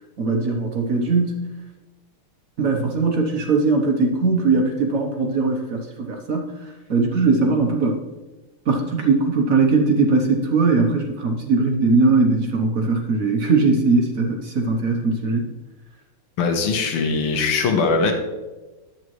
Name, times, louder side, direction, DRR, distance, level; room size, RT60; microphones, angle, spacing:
voice 1, 0.2-1.4 2.6-8.0 8.7-15.5, right 3 dB, 55° right, 2 dB, 1.0 m, -20 dB
voice 2, 16.4-18.1, left 4 dB, 90° left, 4 dB, 1.9 m, -21 dB
10.5 x 8.2 x 3.1 m, 1.1 s
omnidirectional pair, 2.4 m